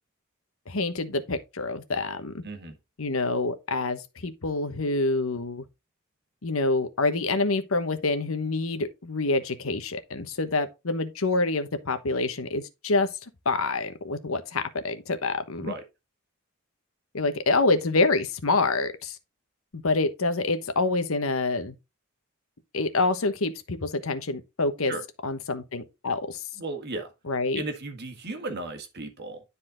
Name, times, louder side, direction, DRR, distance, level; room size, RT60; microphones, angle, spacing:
voice 1, 0.7-2.4 3.0-5.6 6.4-13.1 13.4-15.7 17.1-19.2 19.7-21.7 22.7-24.9 25.2-26.4 27.2-27.6, left 3 dB, 70° left, 1.1 m, -27 dB
voice 2, 2.4-2.7 15.6-15.8 24.9-25.0 26.6-27.1 27.5-29.4, right 2 dB, 50° right, 1.7 m, -35 dB
10.0 x 4.2 x 3.9 m
head